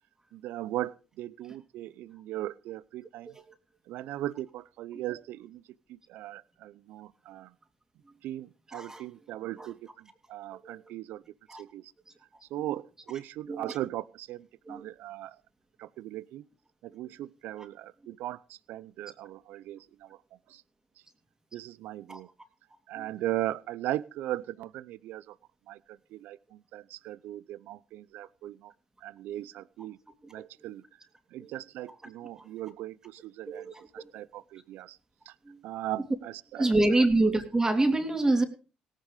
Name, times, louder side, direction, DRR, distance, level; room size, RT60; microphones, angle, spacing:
voice 1, 0.3-3.4 3.9-5.6 5.9-7.5 8.2-11.2 11.6-11.9 12.5-15.4 15.8-16.4 16.8-20.2 20.5-20.6 21.5-22.3 22.9-25.4 25.7-28.7 29.0-30.0 30.3-30.8 31.3-35.0 35.3-35.4 35.6-36.9, right 14 dB, 70° right, 19 dB, 0.7 m, -38 dB
voice 2, 8.7-9.0 9.6-9.7 10.6-10.9 11.5-11.6 13.5-13.8 14.7-14.8 22.1-22.2 23.0-23.1 30.2-30.5 31.4-31.5 32.4-32.5 33.5-34.3 35.4-35.6 36.6-38.4, right 2 dB, 20° right, 5 dB, 3.3 m, -27 dB
18.0 x 10.5 x 5.0 m, 0.35 s
hypercardioid pair, 60°, 3 cm